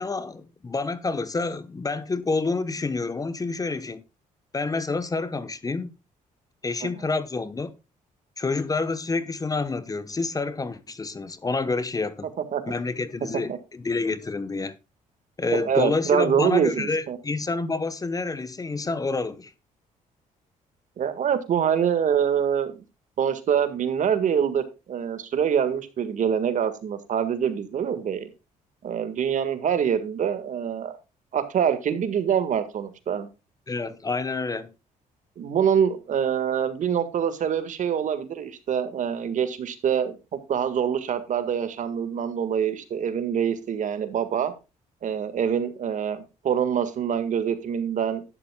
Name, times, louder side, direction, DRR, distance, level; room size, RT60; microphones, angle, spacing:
voice 1, 0.0-4.0 4.5-5.9 6.6-7.8 8.4-12.3 12.7-14.7 15.4-19.5 33.7-34.7, left 3 dB, 25° left, 1.0 m, -28 dB
voice 2, 15.5-17.2 21.0-22.8 23.2-28.3 28.8-30.9 31.3-33.3 35.4-44.5 45.0-48.3, right 8 dB, 60° right, 1.8 m, -25 dB
12.0 x 10.5 x 2.3 m
cardioid pair, 90°, 15 cm